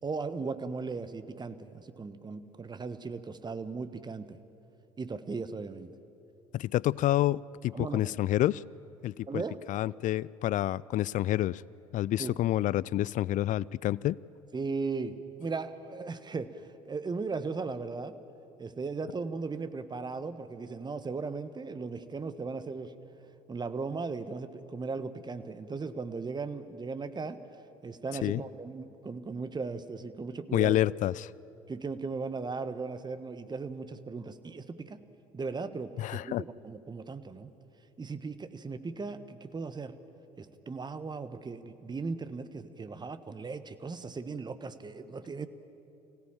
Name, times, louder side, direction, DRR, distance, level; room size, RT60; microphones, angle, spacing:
voice 1, 0.0-4.4 5.0-5.9 7.7-8.2 9.3-9.6 12.2-12.4 14.5-18.2 18.6-22.9 23.5-27.4 27.8-30.7 31.7-35.0 35.3-37.5 38.0-40.0 40.4-45.5, right 4 dB, 25° right, 12 dB, 1.3 m, -37 dB
voice 2, 6.5-8.6 9.0-9.4 9.7-11.6 11.9-14.2 28.2-28.4 30.5-31.3 36.0-36.4, left 14 dB, 45° left, 23 dB, 0.4 m, -28 dB
25.0 x 16.5 x 9.0 m, 2.9 s
hypercardioid pair, 65°, 18 cm